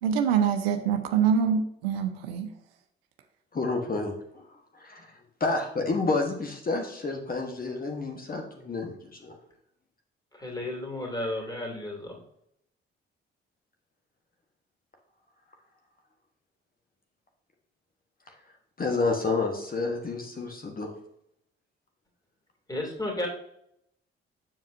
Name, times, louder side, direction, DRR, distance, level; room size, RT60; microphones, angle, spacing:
voice 1, 0.0-2.5, right 7 dB, 75° right, 0.6 m, -25 dB
voice 2, 3.5-5.1 5.4-9.3 18.8-20.9, left 3 dB, 30° left, 1.1 m, -30 dB
voice 3, 10.3-12.2 22.7-23.3, left 1 dB, 10° left, 2.6 m, -33 dB
7.4 x 7.2 x 2.6 m
figure-of-eight pair, 40°, 30 cm